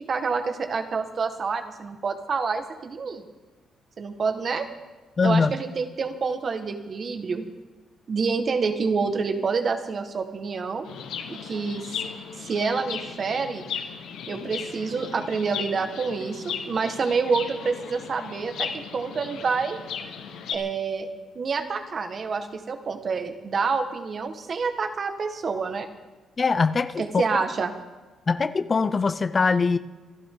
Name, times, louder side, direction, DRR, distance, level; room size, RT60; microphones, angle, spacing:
voice 1, 0.0-3.3 4.0-4.7 5.2-7.5 8.1-10.9 11.3-11.9 12.4-13.6 14.3-19.8 20.5-21.1 21.3-25.9 27.0-27.7, right 5 dB, 45° right, 6 dB, 1.7 m, -27 dB
voice 2, 5.2-5.5 26.4-27.4 28.3-29.8, left 4 dB, 35° left, 13 dB, 0.6 m, -22 dB
Chirp tweet, 10.8-20.5, left 7 dB, 85° left, 1.4 m, -36 dB
26.5 x 11.5 x 3.9 m, 1.2 s
cardioid pair, 90°, 0 cm